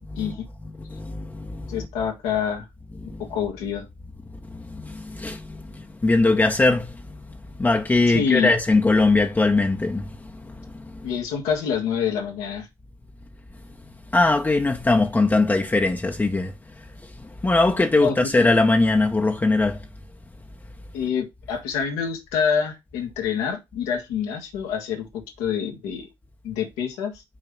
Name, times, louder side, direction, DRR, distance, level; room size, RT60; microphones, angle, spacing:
voice 1, 0.1-0.5 1.7-2.6 3.2-3.9 8.1-8.6 11.0-12.7 17.9-18.3 20.9-26.1 26.4-27.2, left 7 dB, 85° left, 1.6 m, -26 dB
voice 2, 0.9-1.7 3.0-3.2 4.5-6.9 7.6-11.1 14.1-16.5 17.4-19.8, left 2 dB, 20° left, 0.8 m, -21 dB
5.9 x 3.3 x 5.3 m
supercardioid pair, 65°, 10 cm